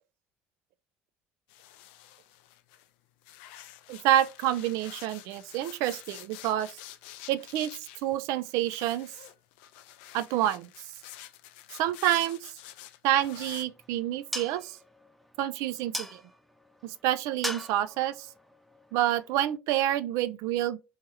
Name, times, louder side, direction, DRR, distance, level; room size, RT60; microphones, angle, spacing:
sound 1, 1.5-2.9 3.2-13.6, left 13 dB, 70° left, 0.4 m, -48 dB
voice 1, 3.9-6.8 7.3-7.7 8.0-9.1 10.1-10.7 11.8-12.5 13.0-14.8 15.4-16.2 16.8-18.3 18.9-20.8, right 13 dB, 65° right, 0.4 m, -28 dB
sound 2, 13.1-19.6, left 1 dB, ahead, 0.6 m, -42 dB
3.4 x 3.1 x 3.1 m
hypercardioid pair, 60°, 6 cm